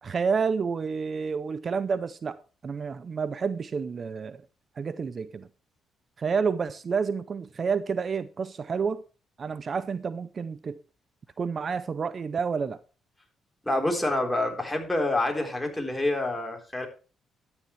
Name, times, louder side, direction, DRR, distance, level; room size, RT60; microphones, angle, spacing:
voice 1, 0.0-4.4 4.8-5.5 6.2-9.0 9.4-10.8 11.4-12.8, right 5 dB, 45° right, 0.6 m, -29 dB
voice 2, 13.6-16.9, left 2 dB, 5° left, 3.9 m, -27 dB
12.5 x 10.0 x 3.3 m
cardioid pair, 90°, 0 cm